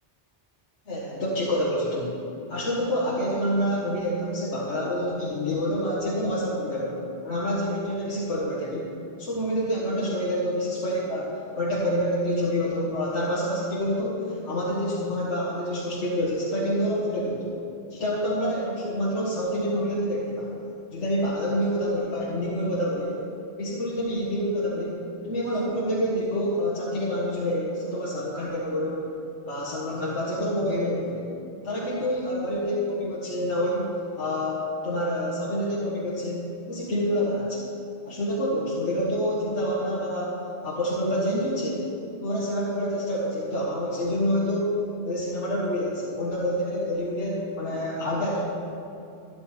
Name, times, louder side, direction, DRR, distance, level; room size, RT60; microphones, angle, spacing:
voice 1, 0.9-2.1 2.5-8.9 9.2-17.5 17.9-20.5 20.9-23.2 23.6-29.1 29.5-31.3 31.6-37.6 38.1-41.9 42.2-48.4, equal, 70° left, -6 dB, 2.0 m, -27 dB
13.0 x 11.5 x 4.4 m, 2.7 s
omnidirectional pair, 1.2 m